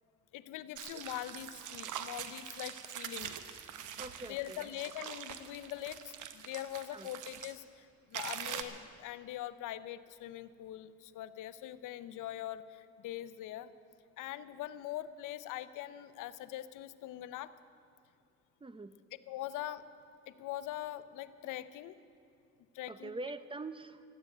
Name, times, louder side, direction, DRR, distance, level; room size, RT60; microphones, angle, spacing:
voice 1, 0.3-3.3 4.3-13.7 14.2-17.5 19.3-19.8 20.3-21.9 22.7-23.1, left 13 dB, 90° left, 14 dB, 0.7 m, -42 dB
sound 1, 0.7-7.5 8.1-8.6, right 9 dB, 80° right, 1.0 m, -44 dB
voice 2, 4.0-4.6 6.9-7.1 18.6-19.0 22.9-24.0, right 2 dB, 15° right, 13 dB, 0.6 m, -44 dB
13.5 x 9.7 x 9.6 m, 2.5 s
cardioid pair, 90°, 30 cm